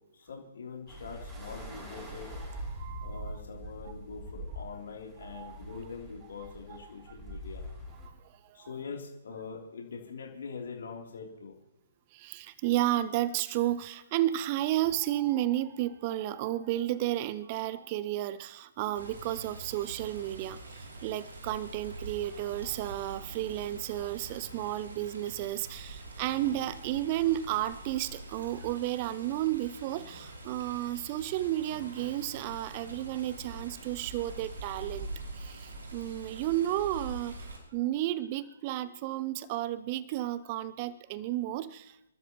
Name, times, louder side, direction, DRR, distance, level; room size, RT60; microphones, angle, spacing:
voice 1, 0.1-2.3 3.0-7.6 8.5-11.5, left 5 dB, 60° left, -1 dB, 3.4 m, -43 dB
sound 1, 0.9-8.1, right 1 dB, 15° right, 5.4 m, -43 dB
voice 2, 2.5-3.2 5.2-5.6 6.7-6.8 8.0-8.7 12.1-37.5 37.7-42.1, right 14 dB, 35° right, 17 dB, 0.5 m, -32 dB
Water, 18.9-37.6, right 2 dB, 70° right, 4.9 m, -45 dB
30.0 x 13.0 x 3.1 m, 0.89 s
figure-of-eight pair, 130°, 0 cm